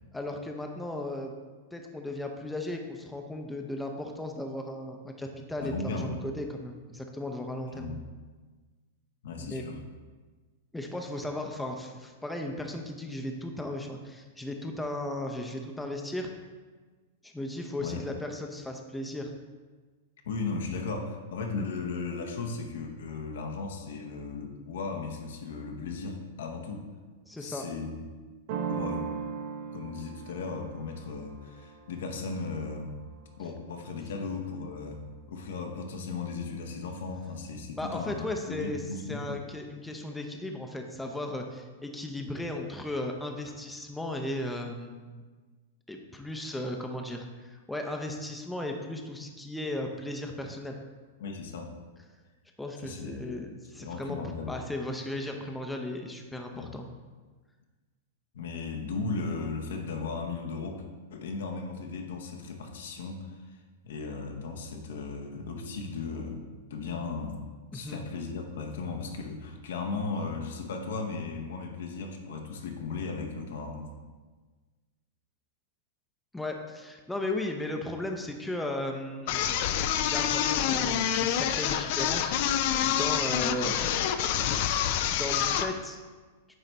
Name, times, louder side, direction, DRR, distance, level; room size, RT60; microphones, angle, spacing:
voice 1, 0.1-1.3 1.7-7.9 9.4-9.6 10.7-16.3 17.2-19.3 27.3-27.7 37.8-38.8 39.1-45.2 45.9-50.8 52.6-54.2 54.5-56.9 67.7-68.0 76.3-79.6 80.0-84.0 85.1-86.0, left 1 dB, 5° left, 2 dB, 0.7 m, -36 dB
voice 2, 5.6-6.1 7.7-8.0 9.2-9.8 17.8-18.0 20.2-26.9 27.4-28.0 28.7-29.1 29.7-32.9 33.4-35.0 35.3-39.4 51.2-51.7 52.8-53.2 53.8-54.5 56.5-56.7 58.3-60.8 61.1-66.4 66.7-67.4 67.7-73.9, left 4 dB, 70° left, 3 dB, 0.9 m, -36 dB
sound 1, 28.5-34.0, right 6 dB, 55° right, 0.6 m, -39 dB
sound 2, 79.3-85.7, left 9 dB, 55° left, 0.4 m, -27 dB
9.0 x 3.2 x 4.1 m, 1.4 s
hypercardioid pair, 105°, 0 cm